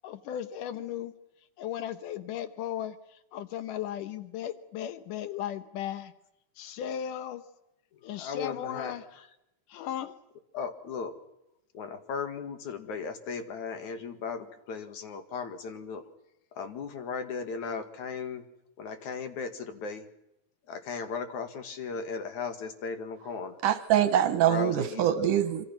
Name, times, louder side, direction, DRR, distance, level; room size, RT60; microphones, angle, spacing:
voice 1, 0.0-1.1 1.6-2.9 3.3-6.1 6.6-7.4 8.0-9.0 9.7-10.1, left 10 dB, 85° left, 2.6 m, -36 dB
voice 2, 8.1-9.3 10.5-11.1 11.7-16.0 16.6-18.4 18.8-20.0 20.7-23.6 24.5-25.3, left 5 dB, 70° left, 3.3 m, -36 dB
voice 3, 23.6-25.6, right 10 dB, 85° right, 2.9 m, -24 dB
26.5 x 26.0 x 6.0 m
omnidirectional pair, 3.6 m